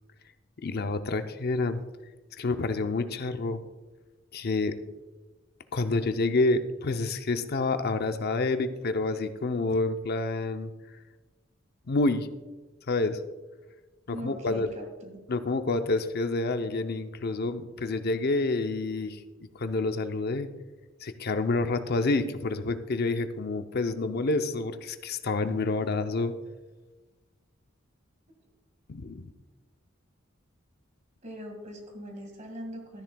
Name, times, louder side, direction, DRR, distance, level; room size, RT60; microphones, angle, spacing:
voice 1, 0.6-1.8 2.4-3.6 4.3-4.7 5.7-10.7 11.9-12.3 12.9-13.2 14.1-14.7 15.3-19.2 19.5-20.5 21.0-26.3 28.9-29.2, left 3 dB, 55° left, 9 dB, 0.6 m, -28 dB
voice 2, 14.1-15.2 31.2-33.0, equal, 40° right, 2 dB, 1.9 m, -41 dB
13.0 x 10.5 x 2.3 m, 1.2 s
head